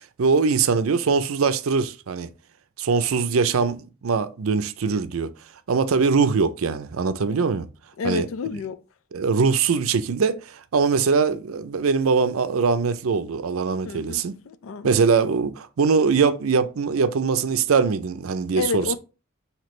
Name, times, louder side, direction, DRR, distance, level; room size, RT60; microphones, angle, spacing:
voice 1, 0.2-2.3 2.8-5.3 5.7-7.7 8.0-8.3 9.1-14.3 14.8-19.0, right 5 dB, 90° right, 0.5 m, -22 dB
voice 2, 8.0-8.8 13.8-14.9 18.6-19.0, left 5 dB, 80° left, 0.4 m, -30 dB
5.9 x 2.8 x 3.1 m
head